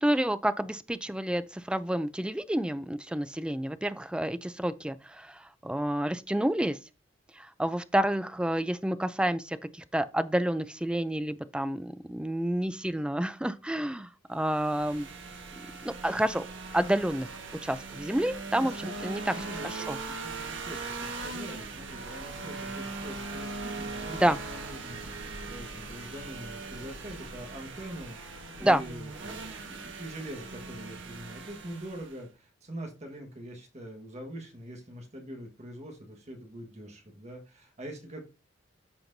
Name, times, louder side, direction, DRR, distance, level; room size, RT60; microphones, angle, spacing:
voice 1, 0.0-6.8 7.4-15.1 15.8-16.5 16.7-17.3 17.6-19.3 19.6-20.0 24.1-24.4 28.6-28.8, right 1 dB, 5° right, 0.4 m, -29 dB
sound 1, 14.4-32.2, right 3 dB, 80° right, 1.4 m, -40 dB
voice 2, 18.6-18.9 19.3-38.2, right 1 dB, 35° right, 1.5 m, -43 dB
13.0 x 4.4 x 2.7 m
head